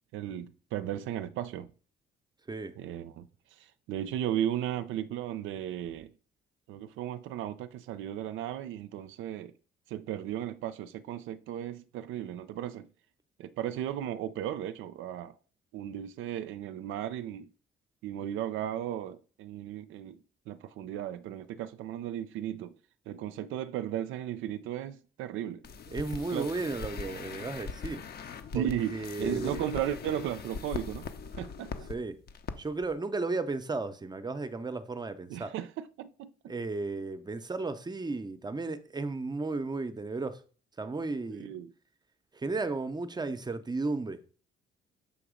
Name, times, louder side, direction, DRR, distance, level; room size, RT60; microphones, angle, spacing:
voice 1, 0.1-1.7 2.8-6.1 6.7-9.5 9.9-12.9 13.4-15.4 15.7-17.5 18.0-22.8 23.1-25.7 26.3-26.7 28.5-31.1 31.4-31.9 35.3-36.5 41.3-41.7, right 11 dB, 85° right, 0.4 m, -35 dB
sound 1, 25.6-32.0 32.3-32.5 32.8-32.9, left 5 dB, 55° left, 0.7 m, -41 dB
voice 2, 25.9-28.1 28.5-29.6 31.9-32.2 32.6-35.5 36.5-40.4 40.8-41.5 42.3-44.2, right 3 dB, 20° right, 0.5 m, -34 dB
6.8 x 2.9 x 4.9 m
cardioid pair, 90°, 20 cm